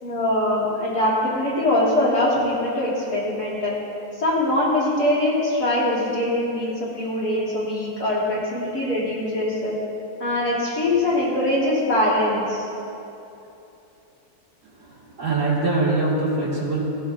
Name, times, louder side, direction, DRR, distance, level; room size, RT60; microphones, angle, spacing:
voice 1, 0.0-3.7 4.2-9.7 10.2-12.6, left 1 dB, 60° left, -8 dB, 3.9 m, -22 dB
voice 2, 14.6-16.8, right 2 dB, 45° right, -7 dB, 3.1 m, -23 dB
16.5 x 12.5 x 2.8 m, 2.8 s
omnidirectional pair, 1.9 m